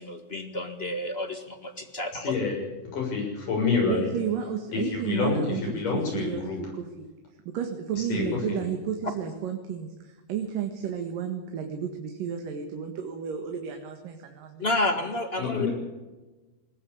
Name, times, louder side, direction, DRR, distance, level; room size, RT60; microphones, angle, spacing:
voice 1, 0.0-2.3 14.6-15.7, left 2 dB, 30° left, 8 dB, 1.2 m, -30 dB
voice 2, 2.2-2.6 2.9-4.1 4.7-6.6 8.0-8.6 15.4-15.7, left 4 dB, 75° left, 0 dB, 8.4 m, -27 dB
voice 3, 3.8-7.1 7.5-14.7, right 8 dB, 90° right, 4 dB, 3.4 m, -32 dB
21.0 x 19.5 x 8.6 m, 1.2 s
omnidirectional pair, 3.8 m